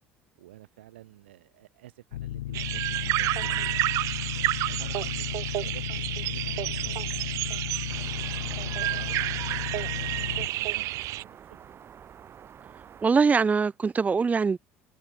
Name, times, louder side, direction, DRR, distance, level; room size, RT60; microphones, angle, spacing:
voice 1, 0.4-5.8 6.1-7.4 7.8-11.7, right 15 dB, 80° right, 3.3 m, -50 dB
sound 1, 2.1-10.5, left 14 dB, 85° left, 0.8 m, -35 dB
sound 2, 2.5-11.2, right 18 dB, 60° right, 0.7 m, -30 dB
sound 3, 7.9-13.1, right 8 dB, 45° right, 1.4 m, -49 dB
voice 2, 13.0-14.6, right 5 dB, 25° right, 0.6 m, -22 dB
hypercardioid pair, 65°, 6 cm